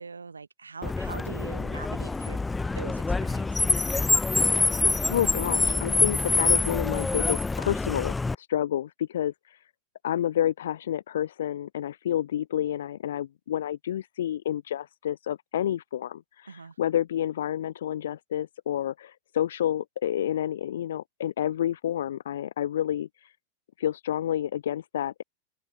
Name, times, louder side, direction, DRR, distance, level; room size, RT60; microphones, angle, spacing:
voice 1, 0.0-2.4 2.8-3.9 16.5-16.7, right 4 dB, 75° right, 1.0 m, -42 dB
Car, 0.8-8.3, left 3 dB, 10° left, 0.5 m, -26 dB
voice 2, 5.1-9.7 10.0-23.3 23.8-25.2, left 11 dB, 60° left, 0.4 m, -29 dB
open air
figure-of-eight pair, 90°, 0 cm